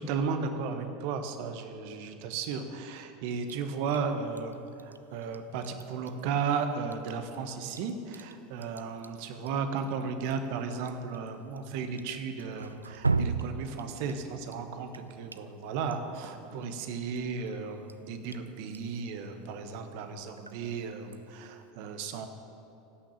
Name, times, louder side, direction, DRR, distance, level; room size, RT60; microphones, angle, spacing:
voice 1, 0.0-22.3, right 5 dB, 60° right, 7 dB, 1.1 m, -35 dB
Drip, 3.4-21.7, right 4 dB, 90° right, 0.3 m, -40 dB
16.0 x 6.4 x 7.0 m, 2.9 s
figure-of-eight pair, 80°, 0 cm